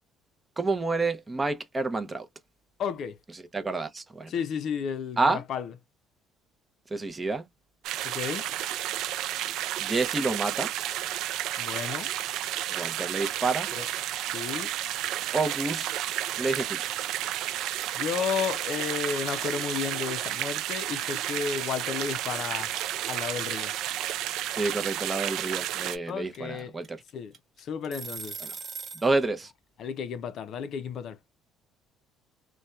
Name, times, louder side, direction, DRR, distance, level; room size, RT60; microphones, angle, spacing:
voice 1, 0.6-2.3 3.5-4.3 5.2-5.4 6.9-7.5 9.8-10.7 12.7-13.7 15.3-15.9 16.4-16.9 24.5-27.0 28.4-28.5 29.0-29.5, right 3 dB, 20° right, 0.5 m, -28 dB
voice 2, 2.8-3.2 4.3-5.7 8.0-8.5 11.6-12.1 13.7-13.9 14.2-14.7 17.9-22.7 23.0-23.7 26.1-26.7 27.1-27.3 27.6-28.3 29.8-31.2, left 7 dB, 55° left, 0.4 m, -33 dB
sound 1, 7.8-26.0, right 12 dB, 70° right, 0.3 m, -32 dB
sound 2, 23.3-29.1, right 6 dB, 40° right, 1.2 m, -41 dB
2.7 x 2.1 x 2.3 m
cardioid pair, 110°, 0 cm